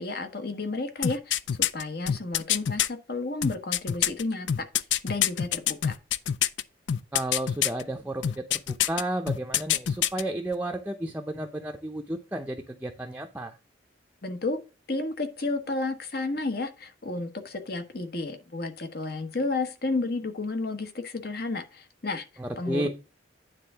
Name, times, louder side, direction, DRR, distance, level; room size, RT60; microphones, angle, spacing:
voice 1, 0.0-1.4 1.7-5.9 14.2-14.6 14.9-22.2 22.6-22.9, left 3 dB, 55° left, 1.3 m, -32 dB
sound 1, 1.0-2.9 3.4-6.6 6.9-7.8 8.2-9.0 9.3-10.2 10.5-10.6, left 10 dB, 85° left, 0.5 m, -25 dB
voice 2, 7.1-13.6 22.4-22.9, right 1 dB, 10° right, 0.6 m, -32 dB
9.6 x 3.7 x 5.6 m
head